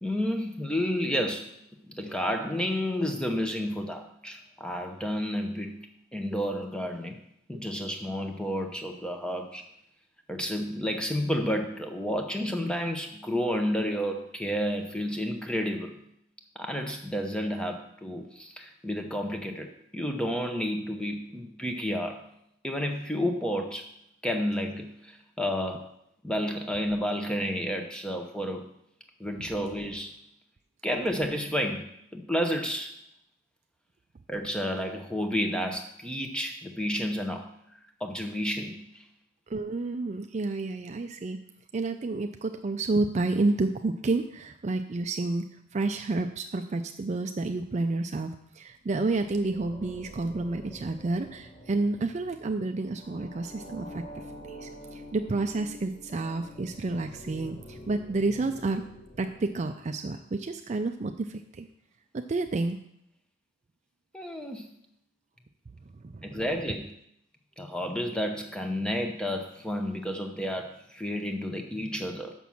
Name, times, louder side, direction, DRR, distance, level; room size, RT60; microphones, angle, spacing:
voice 1, 0.0-1.5 1.9-7.2 7.5-9.7 10.3-16.0 16.5-22.2 22.6-24.0 24.2-25.9 26.2-28.7 29.2-30.2 30.8-32.9 34.3-37.5 38.0-39.0 64.1-64.7 66.2-66.9 67.6-72.3, equal, 5° left, 4 dB, 0.8 m, -31 dB
voice 2, 39.5-41.4 41.7-45.4 45.7-54.0 54.4-58.8 59.2-61.7 62.1-62.8 66.0-66.4, right 3 dB, 35° right, 7 dB, 0.4 m, -30 dB
sound 1, 48.8-60.0, equal, 45° left, 1.8 m, -47 dB
6.1 x 6.0 x 7.1 m, 0.75 s
head